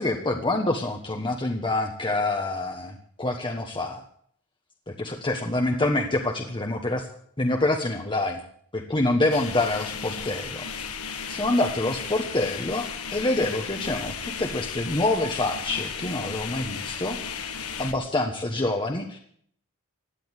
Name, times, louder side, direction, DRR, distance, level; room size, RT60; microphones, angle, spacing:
voice 1, 0.0-4.0 4.9-7.1 7.4-8.4 8.7-10.7 11.3-17.2 17.8-19.2, left 2 dB, 20° left, 3 dB, 1.3 m, -26 dB
sound 1, 9.3-17.9, left 6 dB, 75° left, 1.6 m, -35 dB
16.5 x 10.5 x 8.2 m, 0.63 s
head